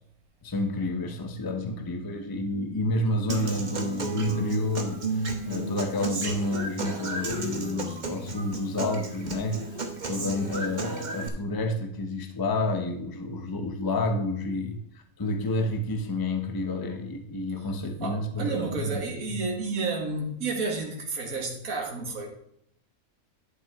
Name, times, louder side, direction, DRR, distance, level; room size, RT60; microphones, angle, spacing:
voice 1, 0.4-19.0 19.3-19.4, left 1 dB, 20° left, 5 dB, 0.6 m, -30 dB
Human voice / Acoustic guitar, 3.3-11.3, right 2 dB, 35° right, 1.0 m, -33 dB
voice 2, 18.0-22.3, right 3 dB, 65° right, 0 dB, 2.0 m, -31 dB
11.5 x 6.0 x 3.6 m, 0.72 s
omnidirectional pair, 1.6 m